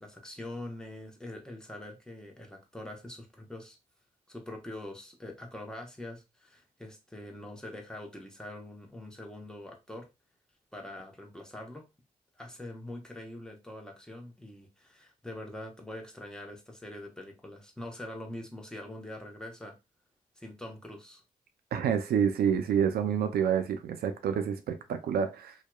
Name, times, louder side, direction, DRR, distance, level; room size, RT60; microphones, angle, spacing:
voice 1, 0.0-3.8 4.3-10.1 10.7-11.8 12.4-19.8 20.4-21.2, left 1 dB, 5° left, 0.9 m, -44 dB
voice 2, 21.7-25.5, right 8 dB, 75° right, 0.4 m, -28 dB
2.7 x 2.2 x 2.2 m
supercardioid pair, 50°, 16 cm